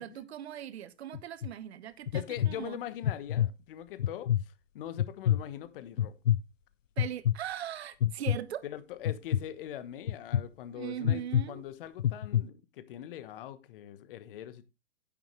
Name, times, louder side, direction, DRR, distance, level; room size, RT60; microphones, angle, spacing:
voice 1, 0.0-2.8 7.0-8.6 10.7-11.6, right 11 dB, 60° right, 1.2 m, -40 dB
sound 1, 1.1-1.5 2.1-2.5 3.0-3.5 4.0-4.4 5.0-5.4 6.0-6.4 7.0-7.3 8.0-8.4 9.1-9.4 10.1-10.4 11.0-11.4 12.0-12.4, left 11 dB, 85° left, 0.6 m, -26 dB
voice 2, 2.1-6.1 8.6-14.7, left 11 dB, 45° left, 1.3 m, -42 dB
10.5 x 9.6 x 3.3 m
hypercardioid pair, 125°, 37 cm